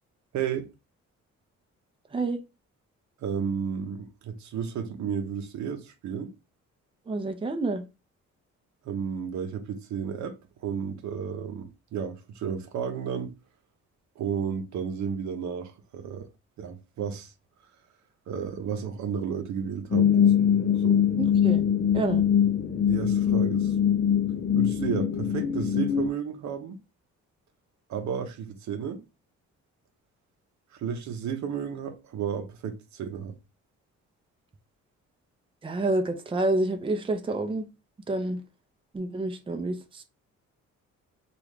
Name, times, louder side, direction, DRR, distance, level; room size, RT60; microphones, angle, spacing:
voice 1, 0.3-0.7 3.2-6.3 8.8-10.4 10.6-13.4 14.2-16.3 16.6-17.3 18.3-20.1 20.8-21.0 22.8-23.7 24.5-26.8 27.9-29.0 30.7-33.3, right 7 dB, 70° right, 0.7 m, -32 dB
voice 2, 7.1-7.8 21.2-21.6 21.9-22.2 35.6-37.7 38.1-38.4 38.9-40.0, right 2 dB, 15° right, 0.5 m, -28 dB
sound 1, 19.9-26.1, left 8 dB, 35° left, 0.4 m, -23 dB
3.0 x 2.4 x 3.4 m
cardioid pair, 90°, 30 cm